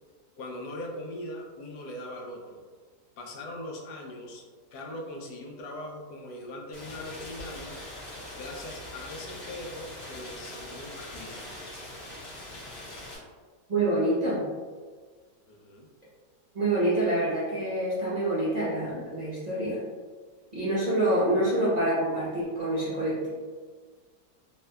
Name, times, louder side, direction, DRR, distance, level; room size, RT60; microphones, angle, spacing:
voice 1, 0.4-2.6 3.2-8.1 8.3-11.5 15.5-15.9, left 1 dB, 80° left, 0 dB, 1.1 m, -41 dB
Rain, 6.7-13.2, left 1 dB, 50° left, 1.0 m, -42 dB
voice 2, 13.7-14.4 16.5-19.8 20.5-23.3, right 1 dB, 45° right, -9 dB, 0.5 m, -26 dB
3.2 x 2.7 x 2.2 m, 1.5 s
omnidirectional pair, 1.7 m